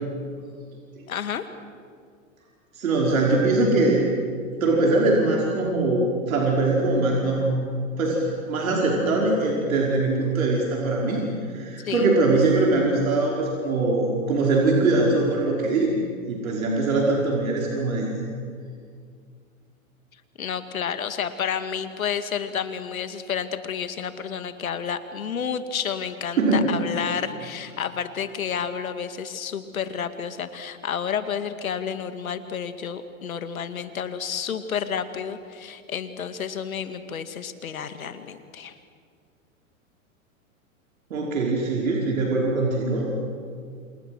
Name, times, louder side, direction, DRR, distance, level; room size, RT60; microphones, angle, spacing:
voice 1, 1.1-1.4 11.8-12.1 20.4-38.7, left 7 dB, 85° left, 10 dB, 2.1 m, -30 dB
voice 2, 2.8-4.0 4.6-7.7 8.0-11.2 11.5-16.0 16.3-18.1 26.4-26.6 41.1-43.1, right 2 dB, 80° right, -2 dB, 5.4 m, -22 dB
28.5 x 27.0 x 6.2 m, 2.1 s
hypercardioid pair, 110°, 41 cm